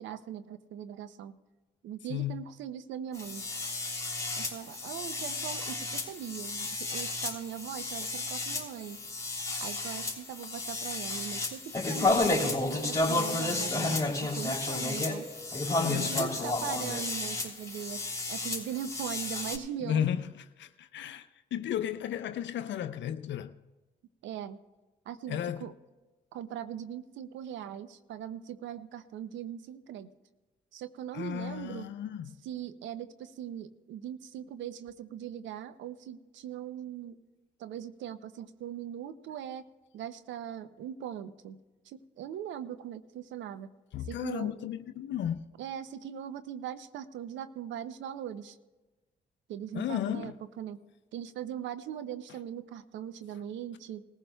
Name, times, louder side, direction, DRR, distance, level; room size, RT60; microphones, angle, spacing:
voice 1, 0.0-1.4 1.8-3.5 4.4-9.0 9.6-15.3 15.8-18.0 18.3-20.1 24.2-24.6 25.1-25.7 26.3-30.1 30.7-31.9 32.4-37.2 37.6-39.6 39.9-41.6 41.9-43.7 44.0-44.5 45.6-48.6 49.5-50.8 51.1-54.0, right 9 dB, 90° right, 0.6 m, -40 dB
voice 2, 2.1-2.4 15.8-16.5 19.8-23.5 25.3-25.7 31.1-32.4 43.9-45.5 49.7-50.3, left 10 dB, 75° left, 0.5 m, -34 dB
sound 1, 3.1-19.6, left 2 dB, 15° left, 3.0 m, -32 dB
20.0 x 14.5 x 2.3 m
supercardioid pair, 55°, 19 cm